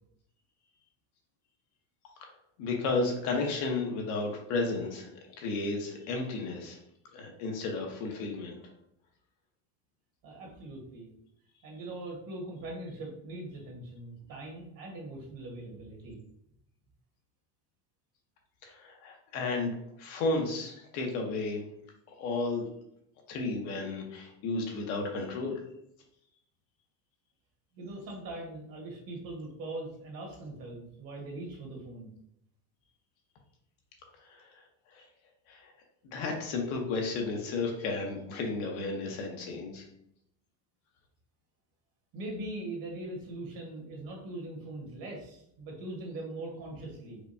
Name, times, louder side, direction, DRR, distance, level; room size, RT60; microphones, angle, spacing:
voice 1, 2.6-5.1 5.4-6.8 7.1-8.5 18.6-21.6 22.2-22.6 23.3-25.6 34.3-34.5 34.9-35.0 35.5-35.7 36.0-39.8, left 3 dB, 75° left, 1 dB, 1.1 m, -33 dB
voice 2, 10.2-11.1 11.6-16.2 27.7-32.1 42.1-47.2, right 2 dB, 50° right, -1 dB, 1.4 m, -41 dB
4.9 x 2.3 x 2.6 m, 0.75 s
cardioid pair, 130°, 43 cm